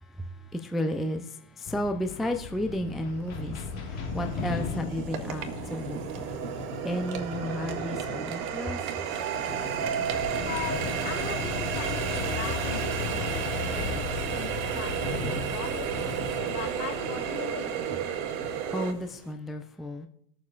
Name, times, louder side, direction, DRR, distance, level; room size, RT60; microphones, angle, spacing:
voice 1, 0.0-6.3 6.8-8.8 9.1-9.2 18.7-20.1, equal, ahead, 0.4 m, -33 dB
sound 1, 1.6-19.2, left 5 dB, 55° left, 1.7 m, -37 dB
Water tap faucet, 2.4-2.5 3.1-18.9, right 8 dB, 60° right, 1.5 m, -33 dB
sound 2, 4.1-19.3, right 9 dB, 85° right, 1.1 m, -42 dB
voice 2, 10.3-13.4 13.7-16.0 16.5-17.7, left 7 dB, 75° left, 2.0 m, -39 dB
20.0 x 7.2 x 2.4 m
hypercardioid pair, 105°, 49 cm